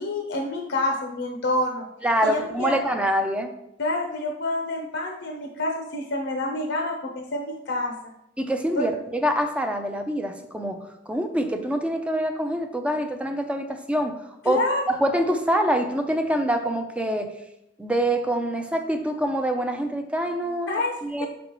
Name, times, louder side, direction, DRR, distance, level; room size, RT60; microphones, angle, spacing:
voice 1, 0.0-1.8 2.2-2.8 3.8-7.9 8.8-8.9 14.5-14.8 20.7-20.9 21.2-21.3, left 2 dB, 65° left, 2 dB, 0.7 m, -27 dB
voice 2, 2.0-3.5 8.4-10.8 11.1-14.2 14.4-14.6 14.9-17.3 17.8-20.7 21.0-21.3, equal, 5° right, 5 dB, 0.5 m, -25 dB
6.4 x 5.3 x 3.0 m, 0.83 s
head